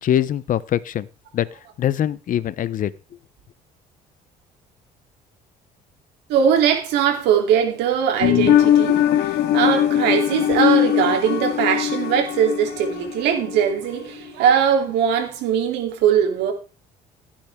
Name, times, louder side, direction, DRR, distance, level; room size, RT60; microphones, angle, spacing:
voice 1, 0.0-1.1 1.3-1.5 1.8-2.9, left 10 dB, 50° left, 0.8 m, -22 dB
voice 2, 6.3-16.5, right 8 dB, 90° right, 3.4 m, -20 dB
sound 1, 8.2-13.7 14.0-14.1, left 11 dB, 80° left, 1.7 m, -20 dB
16.5 x 9.0 x 3.7 m
cardioid pair, 110°, 17 cm